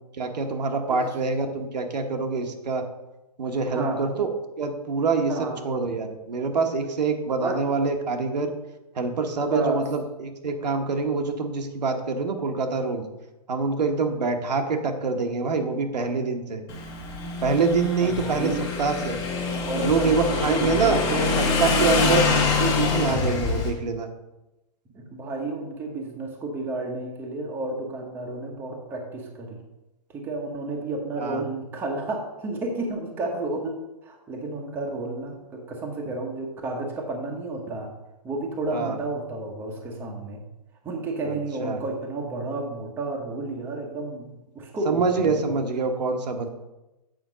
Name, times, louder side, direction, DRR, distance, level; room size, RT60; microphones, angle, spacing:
voice 1, 0.2-2.8 3.4-4.3 4.6-8.5 8.9-13.0 13.5-16.6 17.4-18.5 18.8-19.2 19.7-21.0 21.6-24.1 31.2-31.4 38.7-39.0 41.2-41.3 41.6-41.8 44.8-46.5, right 4 dB, 85° right, 4 dB, 1.3 m, -25 dB
voice 2, 3.7-4.0 5.3-5.6 7.4-7.6 9.4-9.8 18.0-18.7 19.6-21.3 22.0-22.2 24.9-29.6 30.1-33.8 34.0-37.9 38.2-40.4 40.8-44.3 44.5-45.6, right 2 dB, 10° right, 0 dB, 0.9 m, -31 dB
Motorcycle / Engine, 16.7-23.7, left 4 dB, 20° left, 1.1 m, -25 dB
8.0 x 5.1 x 5.0 m, 0.98 s
hypercardioid pair, 155°, 21 cm